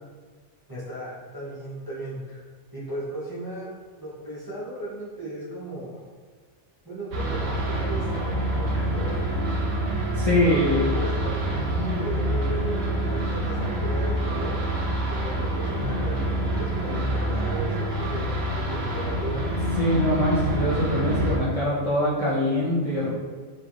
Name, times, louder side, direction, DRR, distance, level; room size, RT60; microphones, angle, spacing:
voice 1, 0.7-2.4 2.7-3.7 4.0-6.0 6.8-9.2 10.3-14.5 15.1-19.4, right 1 dB, 20° right, -9 dB, 0.9 m, -35 dB
sound 1, 7.1-21.4, right 1 dB, 55° right, 0.9 m, -26 dB
voice 2, 10.1-10.9 19.8-23.1, left 1 dB, 35° left, -10 dB, 0.8 m, -23 dB
4.5 x 3.0 x 2.6 m, 1.5 s
omnidirectional pair, 1.3 m